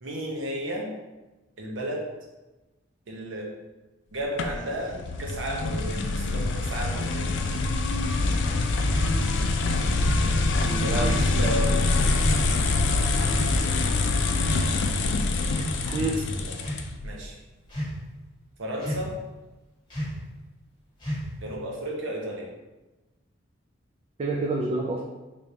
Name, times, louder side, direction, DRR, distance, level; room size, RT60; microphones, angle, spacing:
voice 1, 0.0-0.9 1.6-2.1 3.1-3.5 4.1-7.3 10.8-12.4 15.8-16.7 17.0-17.4 18.6-19.2 21.4-22.5, equal, 70° right, -1 dB, 0.7 m, -33 dB
sound 1, 4.4-17.1, left 2 dB, 60° left, 0.3 m, -25 dB
sound 2, 8.9-9.2 10.0-10.3 11.1-11.4 12.2-12.5 13.3-13.6 14.4-14.9 15.5-15.8 16.5-16.9 17.7-18.1 18.8-19.2 19.9-20.2 21.0-21.5, equal, 25° left, 1.3 m, -33 dB
voice 2, 10.7-11.7 15.9-16.2 24.2-25.0, right 2 dB, 30° right, -2 dB, 0.3 m, -29 dB
3.4 x 3.2 x 2.7 m, 1.1 s
head